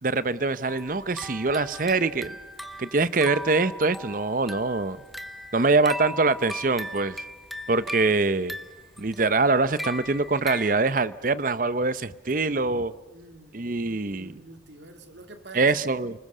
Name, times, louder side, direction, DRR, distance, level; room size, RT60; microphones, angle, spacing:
voice 1, 0.0-2.3 2.8-5.0 5.5-7.2 7.7-8.5 9.0-12.9 13.5-14.4 15.5-16.1, right 3 dB, 45° right, 0.8 m, -24 dB
sound 1, 0.7-10.7, equal, ahead, 1.0 m, -38 dB
voice 2, 13.1-16.0, right 2 dB, 75° right, 2.3 m, -46 dB
29.5 x 20.5 x 6.7 m
head